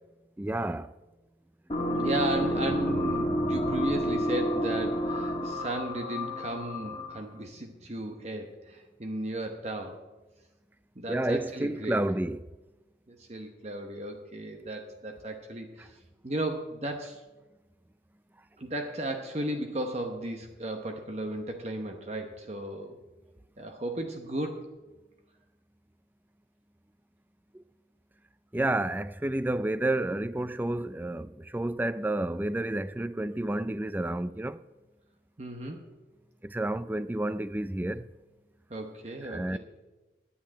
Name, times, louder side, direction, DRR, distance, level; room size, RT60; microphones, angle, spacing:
voice 1, 0.4-0.9 11.1-12.5 27.5-27.6 28.5-34.6 36.4-38.1 39.2-39.6, right 1 dB, 10° right, 0.3 m, -30 dB
sound 1, 1.7-7.3, equal, 30° left, 1.5 m, -30 dB
voice 2, 1.9-10.0 11.0-12.0 13.1-17.2 18.6-23.0 23.6-24.7 35.4-35.8 38.7-39.6, right 1 dB, 35° right, 0.9 m, -35 dB
10.5 x 8.4 x 8.7 m
head